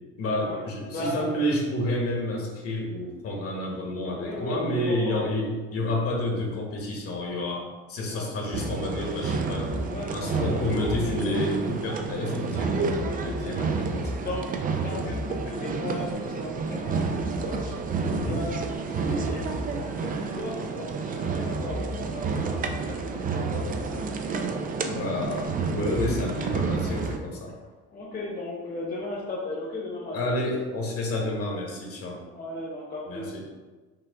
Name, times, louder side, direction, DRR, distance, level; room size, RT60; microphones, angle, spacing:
voice 1, 0.2-9.8 10.1-14.2 18.1-18.4 24.9-27.5 30.1-32.2 33.1-33.4, left 1 dB, 50° left, -1 dB, 1.2 m, -30 dB
voice 2, 0.9-1.5 4.1-5.2 8.1-8.3 9.8-11.4 13.5-13.7 14.1-17.7 18.3-24.4 24.8-25.2 27.9-30.3 32.2-33.4, left 2 dB, 30° left, -4 dB, 1.0 m, -37 dB
sound 1, 8.5-27.2, right 4 dB, 30° right, 0.4 m, -30 dB
sound 2, 15.7-27.3, right 1 dB, 75° right, 1.1 m, -47 dB
5.9 x 2.3 x 3.5 m, 1.3 s
cardioid pair, 120°, 30 cm